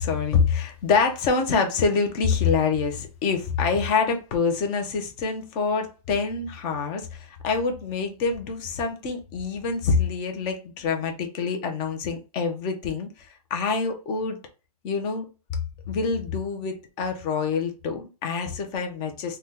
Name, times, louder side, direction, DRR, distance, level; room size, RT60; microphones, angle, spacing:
voice 1, 0.0-14.4 14.8-15.3 15.9-19.4, left 5 dB, 20° left, 5 dB, 0.5 m, -26 dB
2.7 x 2.2 x 3.5 m, 0.32 s
hypercardioid pair, 155°, 20 cm